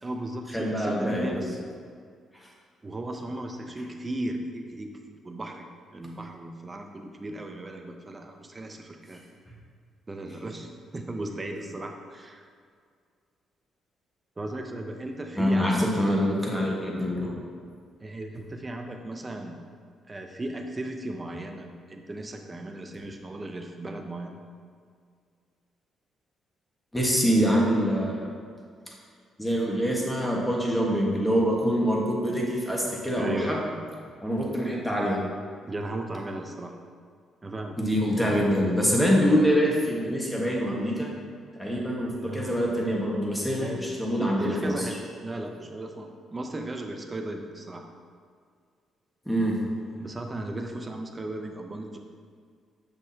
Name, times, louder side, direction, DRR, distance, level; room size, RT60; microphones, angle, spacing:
voice 1, 0.0-1.6 2.8-9.2 10.1-12.5 14.4-15.9 18.0-19.6 20.1-24.4 33.1-33.5 35.7-36.7 37.4-37.8 42.2-42.5 43.6-47.9 50.0-52.0, right 1 dB, 25° right, 4 dB, 0.7 m, -36 dB
voice 2, 0.5-1.4 15.4-17.4 26.9-28.3 29.4-33.6 34.2-35.2 37.8-41.1 41.6-44.7 49.3-49.5, equal, 5° left, -3 dB, 1.5 m, -25 dB
6.9 x 6.2 x 2.9 m, 2.1 s
cardioid pair, 90°, 0 cm